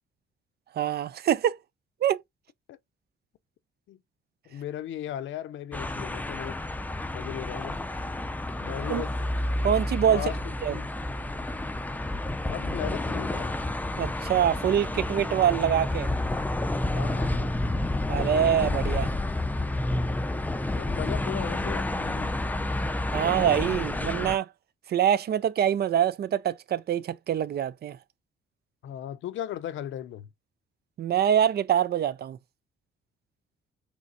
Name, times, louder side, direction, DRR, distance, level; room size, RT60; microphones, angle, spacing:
voice 1, 0.7-1.6 2.0-2.2 8.9-9.0 9.6-10.3 10.6-10.7 14.0-16.1 18.1-19.1 23.1-24.5 24.9-28.0 31.0-32.4, right 9 dB, 55° right, 0.5 m, -25 dB
voice 2, 4.5-6.6 7.1-7.8 8.6-9.1 10.1-10.4 10.7-10.9 12.5-13.6 16.9-17.5 20.7-22.3 28.8-30.3, left 11 dB, 75° left, 0.6 m, -36 dB
sound 1, 5.7-24.4, left 1 dB, 10° left, 0.5 m, -30 dB
5.1 x 3.4 x 2.7 m
cardioid pair, 90°, 20 cm